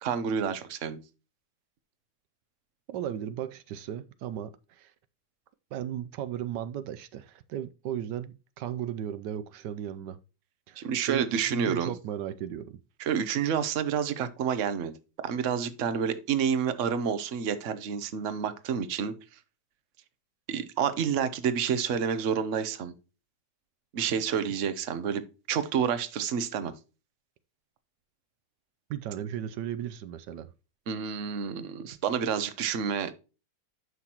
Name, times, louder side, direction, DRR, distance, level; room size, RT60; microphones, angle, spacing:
voice 1, 0.0-1.0 10.8-11.9 13.0-14.9 15.2-19.1 20.5-22.9 23.9-26.7 30.9-33.1, right 7 dB, 50° right, 1.1 m, -29 dB
voice 2, 2.9-4.9 5.7-10.2 10.7-12.8 28.9-30.5, right 10 dB, 85° right, 1.3 m, -36 dB
11.0 x 5.8 x 2.9 m
omnidirectional pair, 1.8 m